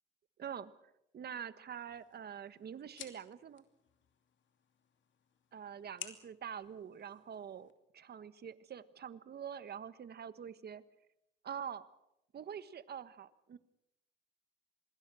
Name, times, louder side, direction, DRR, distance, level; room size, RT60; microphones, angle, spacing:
voice 1, 0.4-0.7 1.1-3.6 5.5-10.8 11.4-11.8 12.3-13.6, right 8 dB, 55° right, 13 dB, 1.5 m, -45 dB
sound 1, 1.7-7.7, left 9 dB, 70° left, 2.8 m, -55 dB
27.0 x 21.0 x 6.4 m, 0.85 s
cardioid pair, 90°, 20 cm